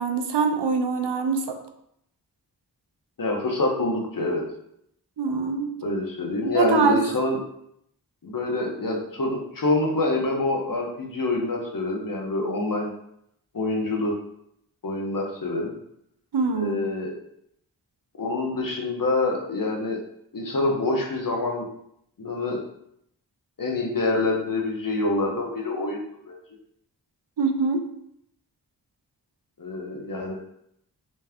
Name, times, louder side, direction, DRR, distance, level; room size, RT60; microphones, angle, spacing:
voice 1, 0.0-1.6 5.2-5.7 6.4-7.0 16.3-16.8 27.4-27.8, right 4 dB, 80° right, 7 dB, 0.6 m, -24 dB
voice 2, 3.2-4.5 5.8-7.4 8.2-12.9 13.5-14.2 14.8-15.7 16.5-17.1 18.2-20.0 20.3-21.7 22.2-22.6 23.6-26.0 26.3-26.4 29.6-30.4, left 2 dB, 55° left, 0 dB, 0.9 m, -26 dB
3.3 x 3.2 x 3.5 m, 0.75 s
wide cardioid pair, 55°, 41 cm